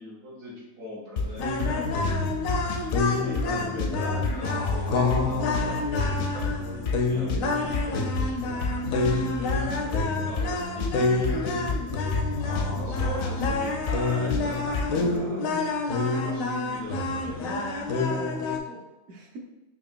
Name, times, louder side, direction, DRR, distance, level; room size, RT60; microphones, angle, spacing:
voice 1, 0.0-2.0 3.2-11.4 12.8-15.4 16.1-17.7, left 1 dB, 85° right, -7 dB, 1.6 m, -41 dB
sound 1, 1.2-15.2, left 4 dB, 65° left, 0.7 m, -31 dB
sound 2, 1.4-18.6, left 3 dB, 85° left, 1.0 m, -28 dB
voice 2, 2.1-2.6 11.0-11.6 15.0-15.6 18.1-19.4, right 1 dB, 65° right, 1 dB, 0.9 m, -41 dB
4.9 x 2.9 x 2.2 m, 1.0 s
omnidirectional pair, 1.4 m